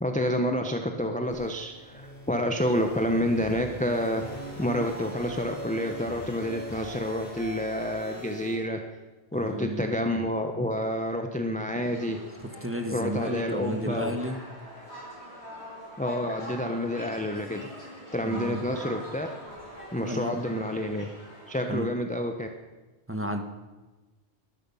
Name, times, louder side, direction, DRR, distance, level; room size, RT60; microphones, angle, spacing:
voice 1, 0.0-4.2 4.6-8.8 9.3-12.2 12.9-14.1 16.0-17.7 18.1-19.3 19.9-21.1 21.5-22.5, equal, 5° left, 4 dB, 0.9 m, -29 dB
sound 1, 1.3-8.5, equal, 30° left, 5.5 m, -41 dB
voice 2, 9.3-10.0 12.6-14.4 18.2-18.7 20.0-20.4 21.7-21.9 23.1-23.4, equal, 10° right, 5 dB, 1.3 m, -32 dB
sound 2, 11.8-21.7, left 1 dB, 70° left, 5.5 m, -43 dB
20.0 x 11.5 x 5.6 m, 1.2 s
omnidirectional pair, 1.2 m